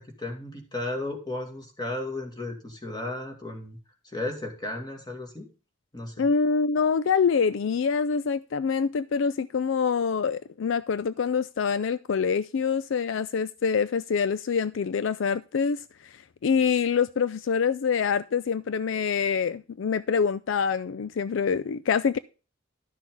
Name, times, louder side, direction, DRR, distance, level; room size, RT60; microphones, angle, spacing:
voice 1, 0.0-3.8 4.0-5.5 5.9-6.2, left 2 dB, 20° left, 2.3 m, -34 dB
voice 2, 6.2-22.2, left 6 dB, 65° left, 0.4 m, -25 dB
12.0 x 6.2 x 3.8 m
head